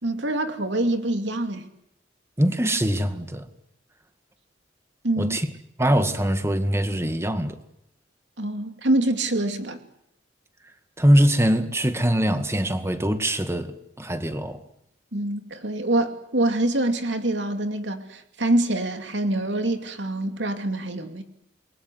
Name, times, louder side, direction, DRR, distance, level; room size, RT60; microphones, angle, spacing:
voice 1, 0.0-1.7 5.0-5.4 8.4-9.8 15.1-21.2, right 1 dB, 75° right, 2.7 m, -25 dB
voice 2, 2.4-3.5 5.2-5.5 5.8-7.6 11.0-14.6, equal, 15° right, 2.0 m, -22 dB
28.5 x 22.5 x 8.0 m
head